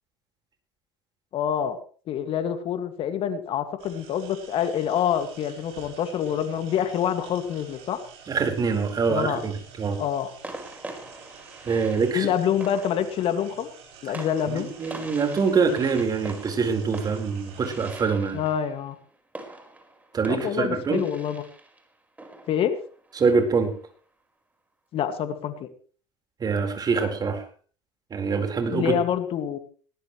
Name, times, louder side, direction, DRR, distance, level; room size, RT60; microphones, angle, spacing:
voice 1, 1.3-1.8 2.1-8.0 9.1-9.4 10.0-10.3 12.1-13.7 14.0-14.7 18.3-18.9 20.3-21.4 22.5-22.8 24.9-25.7 28.7-29.6, left 9 dB, 50° left, 8 dB, 2.2 m, -26 dB
sound 1, 3.8-18.0, right 6 dB, 65° right, 7.6 m, -48 dB
voice 2, 8.3-10.0 11.6-12.3 14.1-18.4 20.1-21.0 23.2-23.7 26.4-27.4 28.1-29.0, right 5 dB, 35° right, 5 dB, 4.5 m, -25 dB
sound 2, 9.2-9.5 10.4-23.8, right 2 dB, 15° right, 4.9 m, -44 dB
20.0 x 18.5 x 3.2 m, 0.42 s
hypercardioid pair, 75°, 12 cm